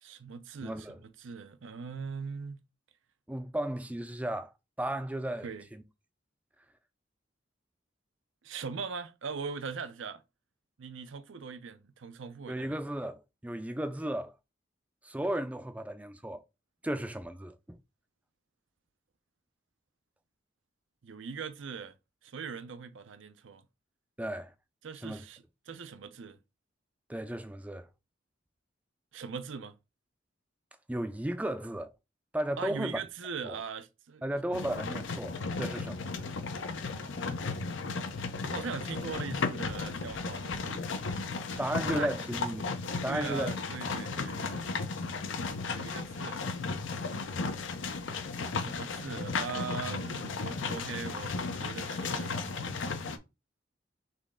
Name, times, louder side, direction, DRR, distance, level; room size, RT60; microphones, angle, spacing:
voice 1, 0.0-2.6 5.4-5.6 8.4-10.2 10.8-12.8 21.0-21.9 22.2-23.6 24.8-26.4 29.1-29.7 32.6-34.2 38.4-40.9 41.5-42.2 43.1-44.8 45.6-46.4 48.5-52.4, right 5 dB, 80° right, 0.6 m, -41 dB
voice 2, 0.6-1.0 3.3-4.5 4.8-5.8 12.5-14.3 15.0-16.4 16.8-17.8 24.2-24.5 25.0-25.2 27.1-27.9 30.9-31.9 32.3-33.0 33.4-33.6 34.2-36.3 41.6-42.8 43.0-43.5, right 1 dB, 5° right, 0.4 m, -34 dB
sound 1, 34.5-53.2, left 4 dB, 75° left, 0.6 m, -35 dB
4.1 x 3.2 x 3.6 m
head